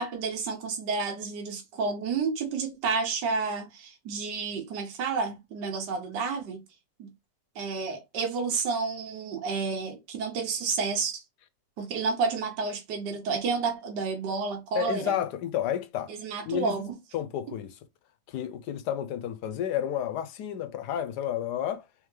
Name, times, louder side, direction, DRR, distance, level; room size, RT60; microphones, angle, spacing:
voice 1, 0.0-6.6 7.0-7.1 7.5-11.2 11.8-15.2 16.1-16.9, right 4 dB, 75° right, 1.5 m, -30 dB
voice 2, 14.7-16.1 16.5-16.8 17.1-17.8 18.3-21.9, left 10 dB, 75° left, 1.2 m, -31 dB
3.6 x 3.3 x 3.2 m
omnidirectional pair, 1.9 m